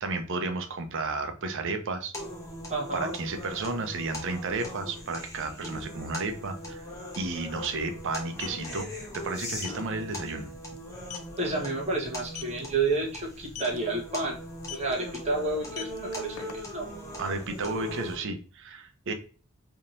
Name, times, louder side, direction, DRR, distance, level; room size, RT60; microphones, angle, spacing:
voice 1, 0.0-2.1 2.9-6.8 7.2-8.9 9.1-10.5 17.2-19.1, right 3 dB, 60° right, 7 dB, 0.6 m, -32 dB
sound 1, 2.1-18.2, left 1 dB, 15° left, 1.0 m, -40 dB
voice 2, 2.7-3.1 11.4-14.4 14.7-16.9, right 3 dB, 30° right, -1 dB, 1.1 m, -30 dB
sound 2, 6.6-6.7 6.9-7.1 8.1-8.6 9.6-9.8 10.2-10.4 10.8-10.9 11.1-11.4 12.2-12.6 13.5-13.8 14.6-14.9 15.6-16.9, left 10 dB, 90° left, 0.5 m, -40 dB
3.5 x 2.9 x 2.5 m, 0.39 s
head